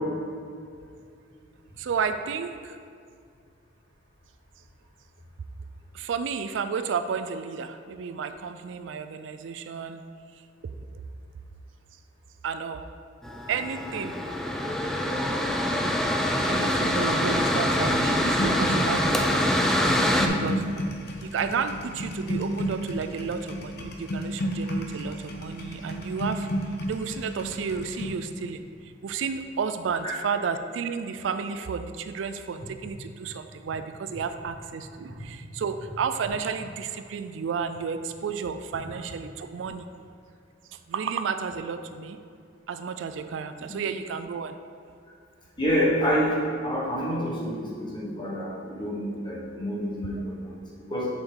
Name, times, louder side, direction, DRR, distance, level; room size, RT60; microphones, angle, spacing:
voice 1, 1.8-2.8 5.9-10.0 12.4-12.9 13.5-14.2 16.5-19.6 20.2-20.6 21.2-26.5 26.8-39.9 40.9-42.2 42.7-44.6, right 6 dB, 80° right, 9 dB, 0.4 m, -32 dB
Mechanical fan, 13.2-20.3, equal, 5° left, 0.4 m, -25 dB
sound 1, 18.4-28.1, equal, 60° left, 0.8 m, -32 dB
voice 2, 20.2-20.5 43.7-43.8 45.6-46.4 46.6-51.1, equal, 25° left, -6 dB, 1.2 m, -28 dB
7.0 x 5.3 x 3.8 m, 2.3 s
head